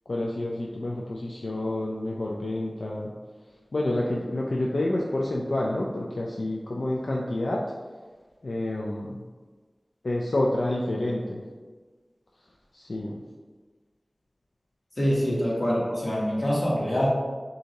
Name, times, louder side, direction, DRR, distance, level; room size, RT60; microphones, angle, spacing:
voice 1, 0.1-3.1 3.7-7.6 8.4-9.2 10.0-11.4 12.7-13.2 15.3-15.4, left 1 dB, 80° left, -3 dB, 0.4 m, -28 dB
voice 2, 15.0-17.1, equal, 55° left, -5 dB, 1.4 m, -25 dB
6.3 x 2.8 x 2.8 m, 1.4 s
wide cardioid pair, 55°, 0 cm